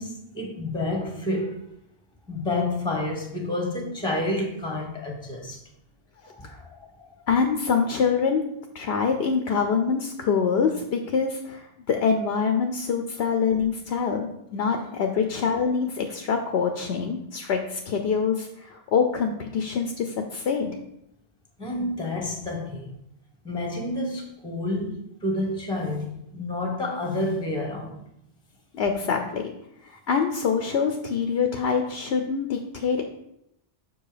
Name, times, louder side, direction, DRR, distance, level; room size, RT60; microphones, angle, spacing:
voice 1, 0.0-1.6 2.3-5.6 6.2-7.1 14.8-14.9 21.6-22.9 23.4-28.0, left 1 dB, 5° left, 1 dB, 1.1 m, -29 dB
voice 2, 7.3-8.4 8.7-20.8 28.7-29.5 29.8-33.0, left 6 dB, 80° left, 5 dB, 0.9 m, -25 dB
6.2 x 4.7 x 5.0 m, 0.78 s
omnidirectional pair, 1.1 m